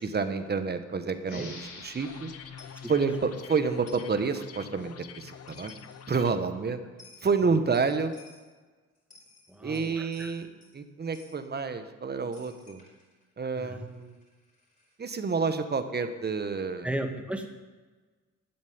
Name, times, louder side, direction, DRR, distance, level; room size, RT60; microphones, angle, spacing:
voice 1, 0.0-2.3 2.9-5.7 6.1-6.8 7.2-8.2 9.6-10.5 10.7-12.8 13.4-14.2 15.0-16.9, right 4 dB, 35° right, 9 dB, 1.4 m, -29 dB
sound 1, 1.2-4.5, left 3 dB, 80° left, 3.4 m, -49 dB
sound 2, 2.0-6.4, left 8 dB, 50° left, 0.9 m, -46 dB
Coin (dropping), 2.6-2.8 3.9-4.1 5.2-5.3 5.5-6.0 7.0-7.3 7.7-8.5 9.0-10.8 11.1-11.4 12.3-15.0, left 3 dB, 25° left, 5.1 m, -56 dB
voice 2, 9.5-10.3 13.6-13.9 16.8-17.5, right 1 dB, 5° right, 4 dB, 1.9 m, -35 dB
12.5 x 7.2 x 9.7 m, 1.3 s
cardioid pair, 90°, 30 cm